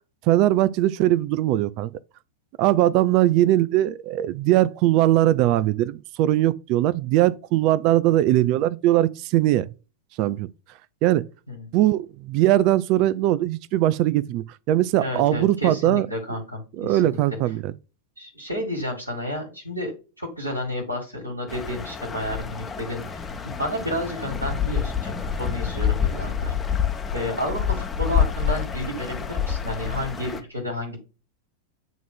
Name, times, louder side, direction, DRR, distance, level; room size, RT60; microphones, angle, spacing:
voice 1, 0.3-1.9 2.6-9.7 10.2-10.5 11.0-11.2 11.7-16.1 16.8-17.7, right 14 dB, 40° right, 0.4 m, -20 dB
voice 2, 15.0-17.2 18.2-25.1 25.4-26.5 27.1-31.0, left 1 dB, 90° right, 2.1 m, -31 dB
sound 1, 21.5-30.4, left 7 dB, 15° left, 0.9 m, -27 dB
9.1 x 3.0 x 3.7 m
figure-of-eight pair, 90°, 0 cm